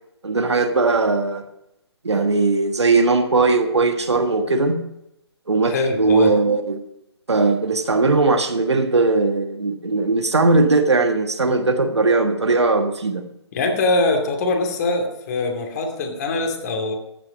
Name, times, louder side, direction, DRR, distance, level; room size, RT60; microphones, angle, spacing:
voice 1, 0.2-1.5 2.0-4.8 5.5-6.8 7.3-13.2, right 3 dB, 75° right, 6 dB, 1.5 m, -19 dB
voice 2, 5.6-6.3 13.5-16.9, left 2 dB, 35° left, 4 dB, 2.5 m, -22 dB
14.5 x 8.8 x 5.1 m, 0.84 s
figure-of-eight pair, 140°, 14 cm